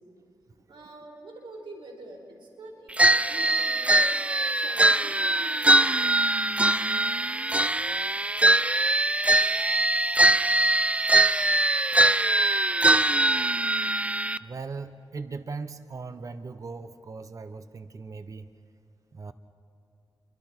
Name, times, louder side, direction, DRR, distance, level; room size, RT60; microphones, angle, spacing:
voice 1, 0.7-5.9, right 2 dB, 75° right, 1 dB, 4.7 m, -45 dB
sound 1, 3.0-14.4, right 2 dB, 15° right, 0.5 m, -22 dB
voice 2, 14.4-18.5 19.1-19.3, right 4 dB, 40° right, 10 dB, 0.9 m, -38 dB
29.5 x 24.5 x 4.4 m, 2.8 s
cardioid pair, 80°, 9 cm